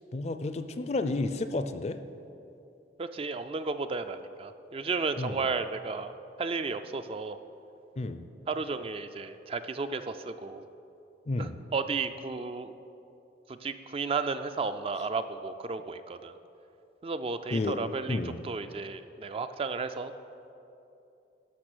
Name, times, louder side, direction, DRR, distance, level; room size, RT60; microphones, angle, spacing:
voice 1, 0.1-2.0 5.2-5.5 8.0-8.2 11.3-11.6 17.5-17.8 18.1-18.4, left 2 dB, 35° left, 10 dB, 0.4 m, -31 dB
voice 2, 3.0-6.1 6.4-7.4 8.5-10.6 11.4-12.7 13.5-16.3 17.0-20.1, right 4 dB, 30° right, 10 dB, 0.3 m, -33 dB
12.5 x 5.3 x 6.1 m, 2.8 s
head